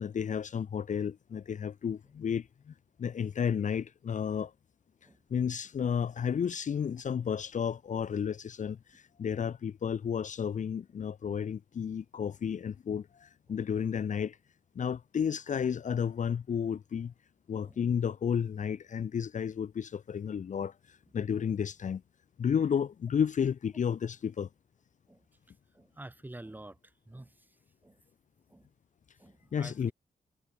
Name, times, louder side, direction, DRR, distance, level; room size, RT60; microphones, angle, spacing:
voice 1, 0.0-2.7 3.0-4.5 5.3-14.4 14.8-17.1 17.5-22.0 22.4-24.5 29.5-29.9, left 7 dB, 50° left, 0.9 m, -32 dB
voice 2, 25.7-26.8 27.1-27.3 27.8-27.9 28.5-28.7 29.2-29.9, right 1 dB, 10° right, 3.3 m, -48 dB
wide cardioid pair, 170°, 16 cm